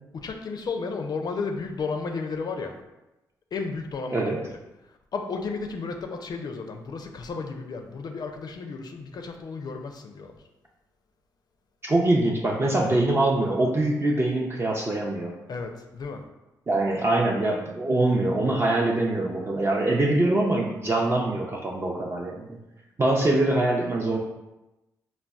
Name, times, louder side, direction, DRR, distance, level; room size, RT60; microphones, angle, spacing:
voice 1, 0.1-2.8 3.5-4.5 4.8-10.5 15.5-16.2, left 4 dB, 50° left, 4 dB, 0.4 m, -33 dB
voice 2, 11.8-15.4 16.7-22.6 23.0-24.2, right 2 dB, 30° right, -2 dB, 0.4 m, -23 dB
3.8 x 2.0 x 2.3 m, 0.99 s
hypercardioid pair, 40°, 9 cm